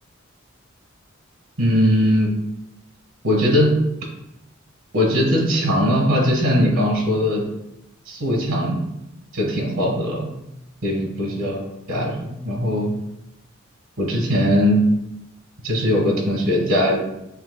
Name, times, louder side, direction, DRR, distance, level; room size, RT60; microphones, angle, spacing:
voice 1, 1.6-2.3 3.2-3.7 4.9-7.4 8.1-8.8 9.3-10.3 10.8-12.9 14.0-14.8 15.6-17.0, equal, 90° right, 0 dB, 1.4 m, -20 dB
6.9 x 2.8 x 2.2 m, 0.85 s
head